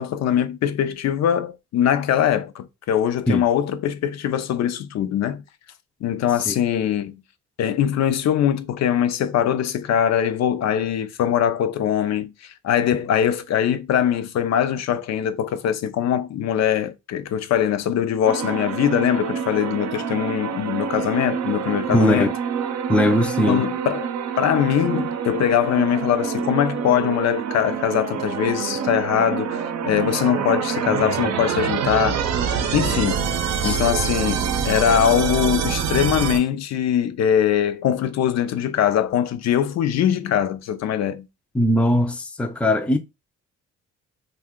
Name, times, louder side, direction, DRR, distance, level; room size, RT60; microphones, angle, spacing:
voice 1, 0.0-5.4 6.0-7.2 7.6-22.3 23.5-24.1 24.4-32.2 32.7-33.3 33.6-41.3, left 9 dB, 60° left, 0.5 m, -22 dB
sound 1, 18.3-36.4, right 7 dB, 60° right, 0.6 m, -26 dB
voice 2, 21.9-22.3 22.9-23.7 33.6-33.8 41.5-43.0, left 1 dB, 5° left, 0.4 m, -19 dB
2.6 x 2.3 x 3.6 m
cardioid pair, 90°, 30 cm